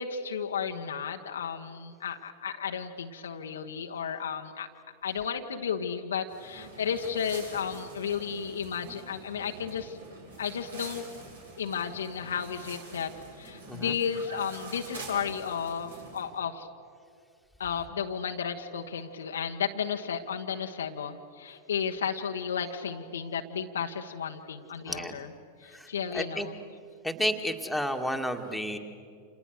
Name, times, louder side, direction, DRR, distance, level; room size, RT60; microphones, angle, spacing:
voice 1, 0.0-4.7 5.0-10.0 10.4-11.0 11.6-16.7 17.6-25.3 25.6-26.6, left 7 dB, 65° left, 3 dB, 1.3 m, -33 dB
sound 1, 6.3-16.3, right 2 dB, 70° right, 5.3 m, -46 dB
voice 2, 24.9-25.2 25.7-26.5 27.0-28.8, equal, ahead, 3 dB, 2.3 m, -31 dB
29.5 x 28.5 x 6.6 m, 2.4 s
figure-of-eight pair, 90°, 0 cm